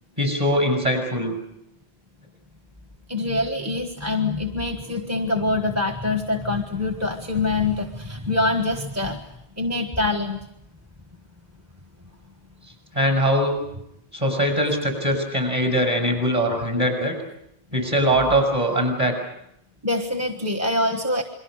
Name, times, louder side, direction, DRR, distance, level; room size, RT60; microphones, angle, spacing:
voice 1, 0.2-1.3 12.9-13.6 14.1-17.1 17.7-19.1, equal, 35° right, 4 dB, 6.7 m, -21 dB
voice 2, 3.1-9.3 9.6-10.4 19.8-21.2, left 2 dB, 15° right, 5 dB, 1.3 m, -24 dB
28.5 x 22.5 x 6.5 m, 0.77 s
omnidirectional pair, 1.1 m